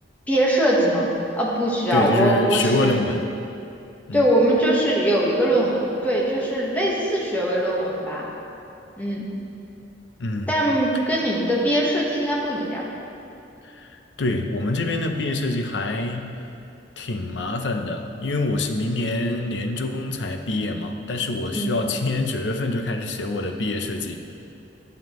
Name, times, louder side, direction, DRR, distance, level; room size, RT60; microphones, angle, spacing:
voice 1, 0.3-1.1 1.3-3.0 4.1-8.2 9.0-9.2 10.5-12.8 21.5-21.7, right 1 dB, 10° left, -4 dB, 1.3 m, -21 dB
voice 2, 1.9-3.2 4.1-4.3 10.2-10.5 13.6-13.9 14.2-16.4 17.0-24.2, left 2 dB, 75° left, 5 dB, 0.6 m, -25 dB
11.0 x 7.1 x 3.1 m, 2.7 s
head